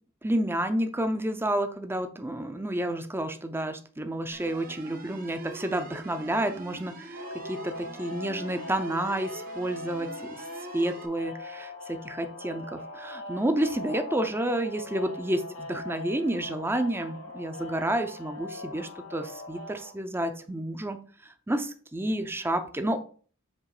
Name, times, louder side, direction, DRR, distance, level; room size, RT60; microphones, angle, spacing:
voice 1, 0.2-10.4 10.7-21.0 21.5-23.0, right 1 dB, 10° right, 7 dB, 0.6 m, -30 dB
sound 1, 4.3-11.1, right 3 dB, 45° right, 0.9 m, -44 dB
sound 2, 7.1-19.9, left 2 dB, 80° left, 1.9 m, -41 dB
7.4 x 3.1 x 4.8 m, 0.43 s
head